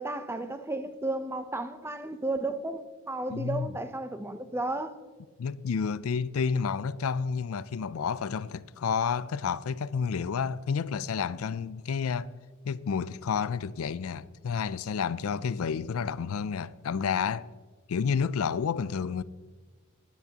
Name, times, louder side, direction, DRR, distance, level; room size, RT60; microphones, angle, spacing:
voice 1, 0.0-4.9, right 2 dB, 10° right, 0.6 m, -33 dB
voice 2, 3.3-3.8 5.4-12.3 12.6-17.5 17.9-19.2, left 6 dB, 80° left, 0.4 m, -30 dB
16.0 x 10.5 x 2.9 m
head